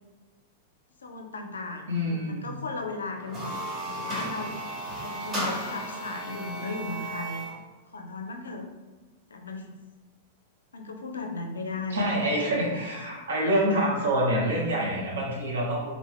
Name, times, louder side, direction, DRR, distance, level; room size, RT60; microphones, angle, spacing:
voice 1, 1.0-3.5 3.9-4.6 5.0-7.4 7.9-8.7 9.3-9.8 10.7-12.1 12.6-12.8 13.1-13.2, left 3 dB, 80° left, 4 dB, 0.4 m, -36 dB
voice 2, 1.9-2.6 11.9-15.9, equal, 80° right, -3 dB, 0.7 m, -26 dB
sound 1, 3.2-7.6, right 1 dB, 25° right, 1.2 m, -34 dB
2.9 x 2.0 x 3.6 m, 1.3 s
hypercardioid pair, 100°, 0 cm